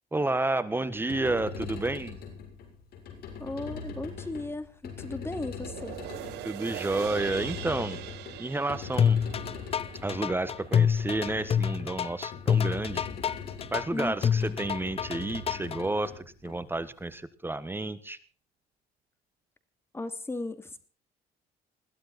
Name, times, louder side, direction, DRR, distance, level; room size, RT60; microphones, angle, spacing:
voice 1, 0.1-2.2 6.4-8.0 8.4-9.2 10.0-13.1 13.7-18.2, right 2 dB, 15° right, 13 dB, 1.4 m, -31 dB
sound 1, 0.9-17.0, left 5 dB, 70° left, 6.9 m, -42 dB
voice 2, 3.4-6.0 13.9-14.5 19.9-20.8, left 2 dB, 15° left, 10 dB, 2.6 m, -36 dB
sound 2, 5.5-12.1 12.6-12.7, right 13 dB, 85° right, 1.9 m, -42 dB
sound 3, 9.0-15.8, left 8 dB, 35° left, 0.7 m, -26 dB
21.5 x 16.0 x 4.2 m, 0.41 s
cardioid pair, 110°, 17 cm